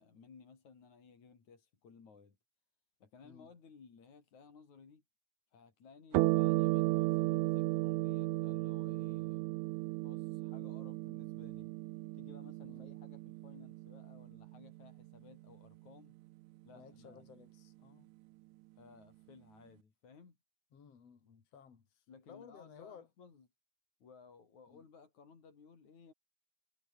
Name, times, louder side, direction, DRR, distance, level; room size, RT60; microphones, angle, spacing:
voice 1, 0.0-2.4 3.0-5.0 5.5-9.5 10.0-11.7 12.1-16.2 16.6-17.2 18.8-20.4 22.1-23.5 24.0-26.1, left 5 dB, 75° left, 5.4 m, -58 dB
sound 1, 6.1-15.0, right 20 dB, 85° right, 2.0 m, -34 dB
voice 2, 16.7-18.1 20.7-23.1 24.7-24.8, left 7 dB, 55° left, 4.0 m, -57 dB
omnidirectional pair, 3.4 m